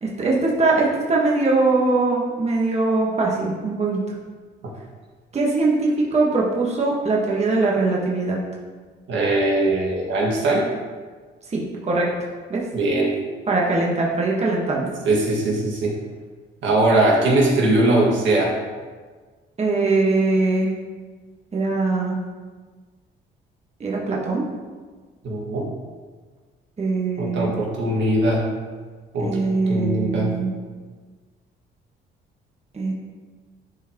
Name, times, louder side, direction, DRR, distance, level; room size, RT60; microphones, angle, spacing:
voice 1, 0.0-4.0 5.3-8.4 11.5-12.1 12.5-12.6 13.5-14.9 19.6-20.7 21.5-22.2 23.8-24.4 26.8-27.6 29.2-30.5 32.7-32.9, right 3 dB, 35° right, -3 dB, 1.4 m, -21 dB
voice 2, 9.1-10.6 12.7-13.1 15.0-15.9 16.6-18.5 25.2-25.7 27.2-28.4 29.1-29.4 29.7-30.3, right 1 dB, 70° right, -2 dB, 1.8 m, -20 dB
11.0 x 4.7 x 3.0 m, 1.5 s
cardioid pair, 90°, 20 cm